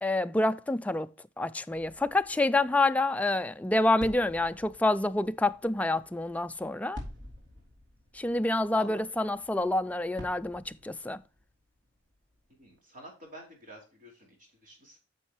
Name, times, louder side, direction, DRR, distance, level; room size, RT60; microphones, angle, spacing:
voice 1, 0.0-1.1 1.4-7.0 8.1-11.2, left 2 dB, 10° left, 0.3 m, -27 dB
sound 1, 1.7-12.8, left 1 dB, 70° right, 3.2 m, -50 dB
voice 2, 12.6-15.0, right 1 dB, 45° right, 4.4 m, -49 dB
9.8 x 6.5 x 3.0 m
head